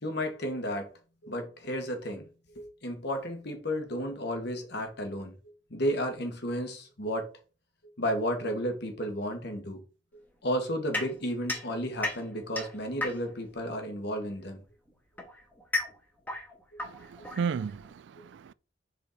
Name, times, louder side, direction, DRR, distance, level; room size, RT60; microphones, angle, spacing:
voice 1, 0.0-0.9 1.2-2.3 2.5-5.3 5.7-7.3 8.0-9.8 10.4-14.6, equal, 55° left, 1.5 m, -32 dB
sound 1, 10.9-13.5 14.6-17.9, left 2 dB, 10° left, 1.4 m, -36 dB
voice 2, 16.8-18.5, right 6 dB, 65° right, 0.3 m, -34 dB
5.0 x 4.7 x 4.0 m
head